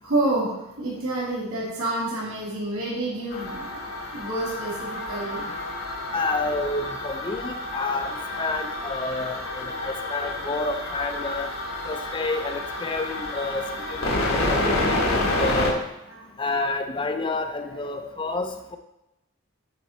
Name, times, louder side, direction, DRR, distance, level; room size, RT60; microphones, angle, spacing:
voice 1, 0.0-6.1 9.1-9.9 10.1-10.3 12.7-13.3 13.6-13.7 14.7-14.9 15.2-15.4 16.1-16.2 17.7-17.8, right 2 dB, 80° right, -7 dB, 2.5 m, -30 dB
sound 1, 3.3-15.7, left 2 dB, 70° left, 1.3 m, -29 dB
voice 2, 6.1-11.5 11.8-15.8 16.4-18.8, left 3 dB, 20° left, 7 dB, 0.5 m, -29 dB
8.8 x 4.3 x 4.1 m, 0.91 s
head